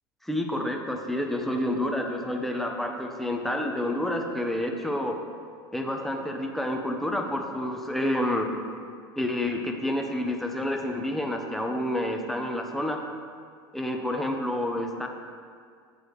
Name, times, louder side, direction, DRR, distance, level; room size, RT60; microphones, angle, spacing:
voice 1, 0.2-5.2 5.7-8.5 9.2-13.0 13.7-15.1, left 1 dB, ahead, 2 dB, 0.8 m, -29 dB
7.5 x 7.1 x 3.2 m, 2.1 s
hypercardioid pair, 90°, 12 cm